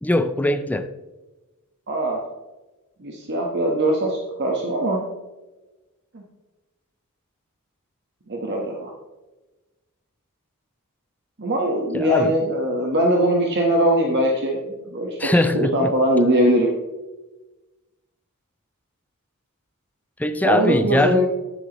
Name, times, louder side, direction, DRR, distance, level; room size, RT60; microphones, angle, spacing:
voice 1, 0.0-0.9 11.9-12.3 15.2-15.9 20.2-21.3, left 1 dB, 5° left, 10 dB, 0.4 m, -21 dB
voice 2, 1.9-2.2 3.0-5.0 6.1-6.2 8.3-8.9 11.4-15.2 15.5-16.7 20.4-21.3, right 1 dB, 50° right, 0 dB, 1.2 m, -21 dB
11.0 x 9.8 x 3.0 m, 1.1 s
head